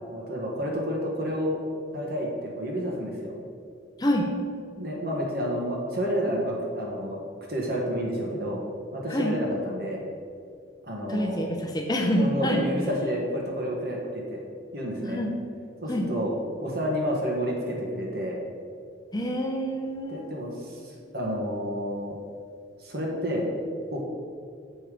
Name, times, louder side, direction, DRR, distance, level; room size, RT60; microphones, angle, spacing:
voice 1, 0.1-1.6 1.9-3.3 4.8-8.6 8.9-10.0 10.9-11.5 12.1-14.4 14.7-15.2 15.8-16.3 16.6-18.4 20.1-22.2 22.8-23.5 23.9-24.0, equal, 55° right, -2 dB, 1.6 m, -30 dB
voice 2, 11.1-12.7 15.1-15.3 15.9-16.1 19.1-20.4, equal, 20° left, 2 dB, 0.6 m, -26 dB
7.1 x 5.5 x 5.0 m, 2.3 s
head